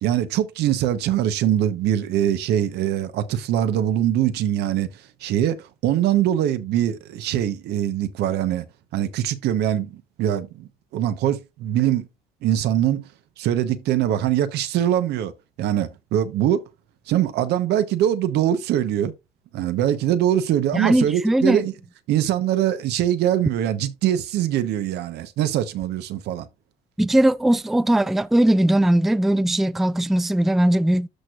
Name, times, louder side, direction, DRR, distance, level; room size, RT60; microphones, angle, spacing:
voice 1, 0.0-4.9 5.2-8.6 8.9-12.1 12.4-13.0 13.4-15.3 15.6-16.6 17.1-19.1 19.5-21.7 22.1-26.5, right 11 dB, 80° right, 1.0 m, -22 dB
voice 2, 20.7-21.6 27.0-31.1, right 1 dB, ahead, 0.3 m, -19 dB
13.0 x 4.6 x 2.4 m
cardioid pair, 110°, 17 cm